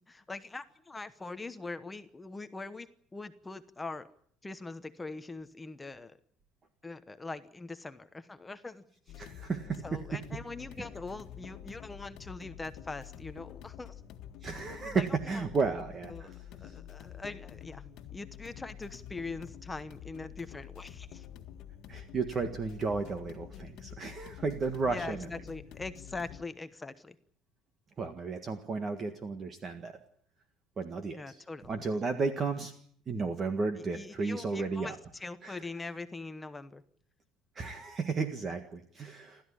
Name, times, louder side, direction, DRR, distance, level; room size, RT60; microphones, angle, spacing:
voice 1, 0.1-2.9 3.1-4.1 4.4-6.2 6.8-8.8 9.8-14.0 14.8-15.1 15.3-15.4 16.1-16.3 16.6-17.8 18.1-21.3 24.8-27.1 31.1-31.7 33.9-36.8, left 3 dB, 10° left, 10 dB, 0.9 m, -42 dB
sound 1, 9.1-26.4, left 10 dB, 50° left, 1.8 m, -48 dB
voice 2, 9.1-10.4 10.8-10.9 14.4-16.4 16.6-16.7 21.9-25.3 28.0-30.0 30.8-32.7 33.1-35.0 35.4-35.7 37.5-39.4, right 4 dB, 25° right, 8 dB, 1.7 m, -34 dB
29.0 x 13.5 x 10.0 m, 0.62 s
cardioid pair, 165°, 0 cm